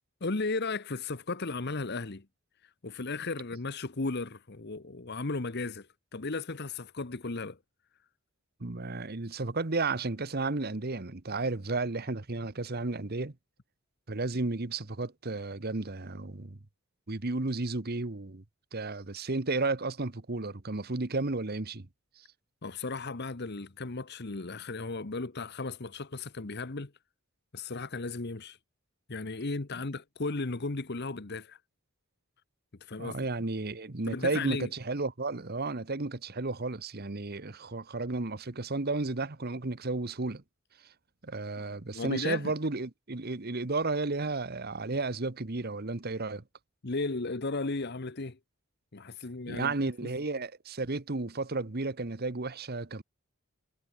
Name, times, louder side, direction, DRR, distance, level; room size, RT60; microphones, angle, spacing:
voice 1, 0.2-2.2 2.8-7.6 22.6-26.9 27.5-28.6 29.1-31.6 32.8-33.2 34.1-34.7 41.9-42.5 46.8-48.4 48.9-49.7, left 3 dB, 50° left, 1.1 m, -35 dB
voice 2, 8.6-13.3 14.1-16.6 17.1-18.4 18.7-21.9 22.2-22.3 33.0-40.4 41.2-46.4 49.5-53.0, right 3 dB, 45° right, 1.2 m, -33 dB
head